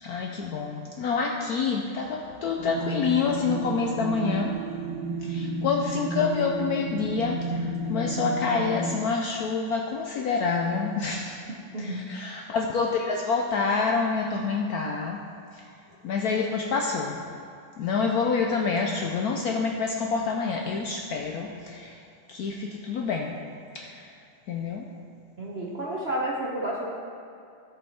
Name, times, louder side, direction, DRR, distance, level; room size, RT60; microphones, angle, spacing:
voice 1, 0.0-4.6 5.2-7.5 7.9-11.4 11.8-15.2 16.0-17.2 17.8-21.9 22.3-23.3 23.7-24.0 24.5-24.8, left 5 dB, 70° left, 1 dB, 0.9 m, -27 dB
sound 1, 2.6-9.0, right 2 dB, 75° right, 1.8 m, -32 dB
voice 2, 25.4-27.0, right 1 dB, 50° right, -3 dB, 0.7 m, -31 dB
13.5 x 5.4 x 4.3 m, 2.5 s
omnidirectional pair, 2.1 m